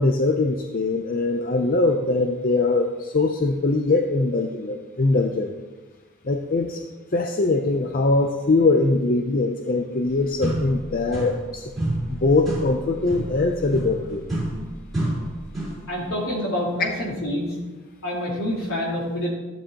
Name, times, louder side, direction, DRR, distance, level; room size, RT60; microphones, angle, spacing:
voice 1, 0.0-5.5 6.3-6.8 7.1-11.6 12.1-14.2, left 3 dB, 40° left, 4 dB, 0.6 m, -22 dB
sound 1, 10.0-10.1 10.4-11.5 11.8-15.9, right 1 dB, ahead, 4.0 m, -29 dB
voice 2, 15.9-17.6 18.0-19.3, left 1 dB, 75° left, -5 dB, 3.8 m, -27 dB
14.0 x 10.0 x 3.0 m, 1.2 s
head